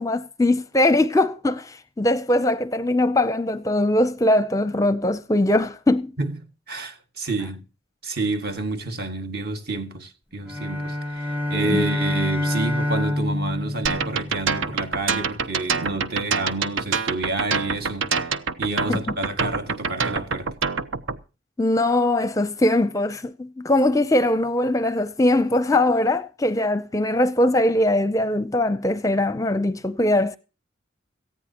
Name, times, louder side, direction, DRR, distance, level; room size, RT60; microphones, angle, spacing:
voice 1, 0.0-6.1 11.6-11.8 18.9-19.0 21.6-30.4, left 1 dB, 15° left, 0.6 m, -21 dB
voice 2, 6.7-7.7 8.0-18.1 18.6-20.5, right 2 dB, 50° right, 2.0 m, -29 dB
sound 1, 10.5-14.9, left 1 dB, 10° right, 0.9 m, -27 dB
sound 2, 13.9-21.2, right 5 dB, 80° right, 0.9 m, -25 dB
18.5 x 14.5 x 2.9 m
head